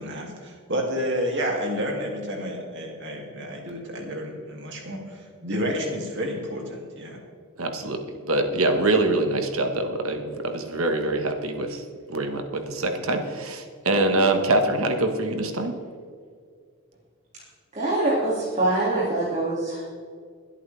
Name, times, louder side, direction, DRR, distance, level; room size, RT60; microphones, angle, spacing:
voice 1, 0.0-7.2, equal, 55° right, 1 dB, 2.7 m, -30 dB
voice 2, 7.6-11.8 12.1-15.7, right 2 dB, 70° right, 5 dB, 1.6 m, -24 dB
voice 3, 17.7-20.0, right 2 dB, 30° right, -6 dB, 2.5 m, -24 dB
22.5 x 8.5 x 3.5 m, 2.1 s
head